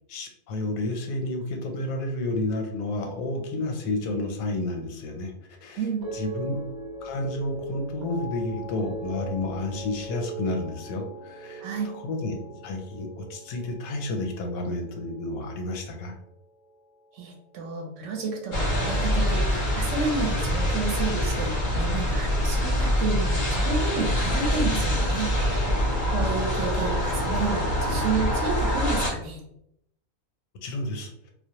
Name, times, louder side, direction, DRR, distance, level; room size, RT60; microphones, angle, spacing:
voice 1, 0.1-5.3 5.6-5.8 6.1-6.6 7.0-11.7 11.9-16.1 30.6-31.1, left 2 dB, 85° left, 3 dB, 1.0 m, -31 dB
sound 1, 6.0-16.4 16.7-17.2, right 2 dB, 45° right, 0.6 m, -40 dB
voice 2, 11.6-11.9 17.1-25.3 26.1-29.4, right 4 dB, 70° right, 0 dB, 0.9 m, -30 dB
sound 2, 18.5-29.1, equal, 50° left, 0.6 m, -25 dB
2.4 x 2.0 x 2.8 m, 0.77 s
omnidirectional pair, 1.4 m